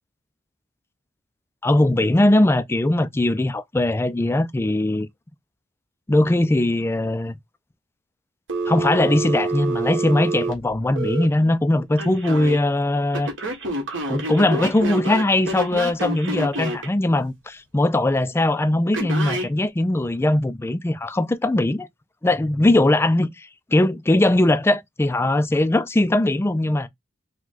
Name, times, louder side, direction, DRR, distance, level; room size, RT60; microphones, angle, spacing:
voice 1, 1.6-5.1 6.1-7.4 8.7-13.3 14.1-21.9 22.2-26.9, left 1 dB, 10° left, 0.3 m, -20 dB
Telephone, 8.5-11.3 12.0-12.6 13.1-16.9 18.9-19.5, right 2 dB, 70° right, 1.5 m, -27 dB
4.8 x 2.2 x 3.9 m
head